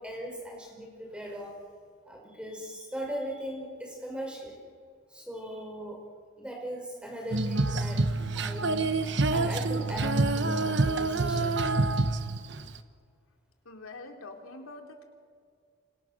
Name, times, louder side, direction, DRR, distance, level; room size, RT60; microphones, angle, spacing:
voice 1, 0.0-1.6 2.0-4.6 5.1-6.1 6.4-8.1 8.3-8.9 9.3-11.6, equal, 5° right, -1 dB, 5.2 m, -39 dB
Female singing, 7.3-12.8, right 3 dB, 55° right, 1.1 m, -27 dB
voice 2, 13.6-15.0, left 2 dB, 90° left, 3 dB, 3.3 m, -45 dB
28.0 x 26.5 x 6.6 m, 2.1 s
head